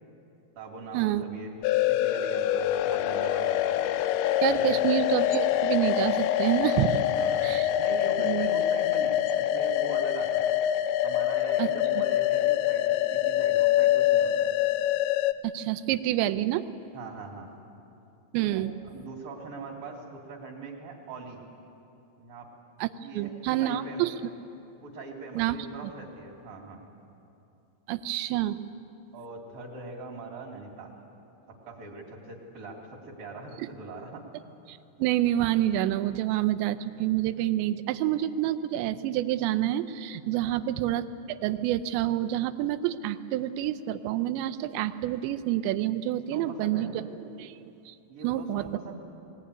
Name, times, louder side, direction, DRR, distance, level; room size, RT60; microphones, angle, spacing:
voice 1, 0.6-3.8 4.7-4.9 7.1-10.5 11.0-14.6 16.9-17.5 18.4-21.4 22.2-22.5 23.0-24.1 24.8-26.9 29.1-31.0 31.5-34.2 40.3-40.7 46.3-47.0 48.1-49.0, right 3 dB, 55° right, -6 dB, 3.6 m, -42 dB
sound 1, 1.6-15.3, left 12 dB, 85° left, 3.0 m, -25 dB
voice 2, 4.4-7.0 7.4-7.7 8.2-8.5 11.6-11.7 15.5-16.7 18.3-18.7 22.8-22.9 23.2-24.1 25.4-25.6 27.9-28.6 34.7-47.0 47.3-47.6 47.9-48.0 48.2-48.6, right 13 dB, 80° right, 12 dB, 2.9 m, -28 dB
19.5 x 18.5 x 9.9 m, 2.8 s
omnidirectional pair, 5.2 m